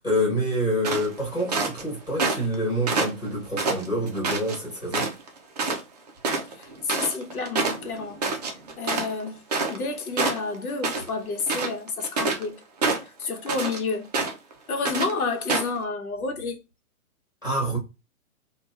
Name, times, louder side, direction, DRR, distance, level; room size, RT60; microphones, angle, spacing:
voice 1, 0.0-5.1 17.4-17.8, equal, 5° left, 1.2 m, -27 dB
sound 1, 0.8-1.8 2.2-2.5 2.9-4.6 4.9-5.3 5.6-5.8 6.1-9.9 10.2-11.1 11.4-12.5 12.8-13.8 14.1-14.5 14.8-15.1 15.5-15.8, right 3 dB, 30° right, 0.4 m, -26 dB
voice 2, 6.5-8.2 8.8-12.6 13.2-14.1 14.7-16.6, left 4 dB, 85° left, 1.0 m, -30 dB
2.9 x 2.3 x 2.3 m
hypercardioid pair, 150°, 43 cm